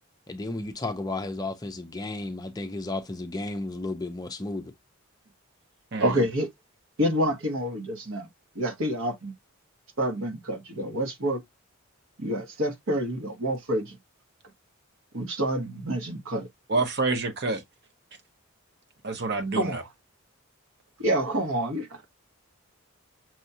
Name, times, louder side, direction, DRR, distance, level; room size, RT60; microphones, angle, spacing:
voice 1, 0.3-4.7, left 2 dB, 15° left, 0.4 m, -33 dB
voice 2, 6.0-6.5 7.0-8.3 8.5-9.3 10.0-11.4 12.2-14.0 15.1-16.5 19.6-19.8 21.0-22.1, equal, 65° right, 1.1 m, -28 dB
voice 3, 16.7-17.6 19.0-19.8, right 3 dB, 50° right, 0.8 m, -27 dB
6.1 x 2.3 x 2.7 m
head